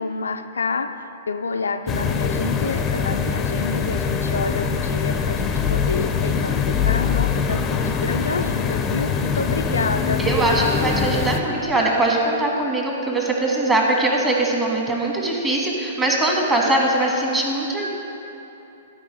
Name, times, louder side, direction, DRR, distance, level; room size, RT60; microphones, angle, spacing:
voice 1, 0.0-10.3, left 4 dB, 75° left, 8 dB, 0.3 m, -28 dB
sound 1, 1.9-11.4, left 6 dB, 20° left, 0.5 m, -23 dB
voice 2, 10.2-17.9, right 2 dB, 15° right, -1 dB, 1.3 m, -21 dB
11.5 x 4.6 x 5.2 m, 2.9 s
figure-of-eight pair, 110°, 0 cm